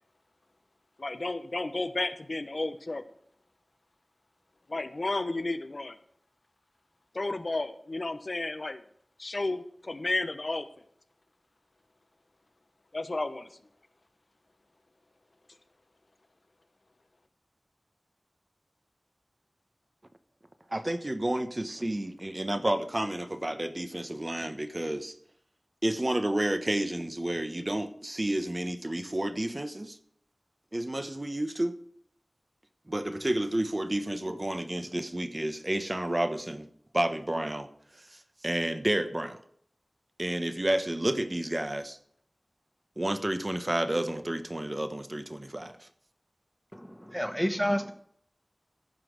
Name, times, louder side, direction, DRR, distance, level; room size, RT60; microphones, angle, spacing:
voice 1, 1.0-3.0 4.7-6.0 7.1-8.8 9.2-10.7 12.9-13.5, left 2 dB, 60° left, 10 dB, 1.1 m, -32 dB
voice 2, 20.7-25.1 25.8-30.0 30.7-31.8 32.9-36.7 36.9-37.7 38.1-39.4 40.2-42.0 43.0-45.9, right 1 dB, 30° right, 9 dB, 1.3 m, -30 dB
voice 3, 46.7-47.9, equal, 5° left, 7 dB, 1.7 m, -29 dB
15.0 x 5.9 x 6.6 m, 0.64 s
wide cardioid pair, 50°, 0 cm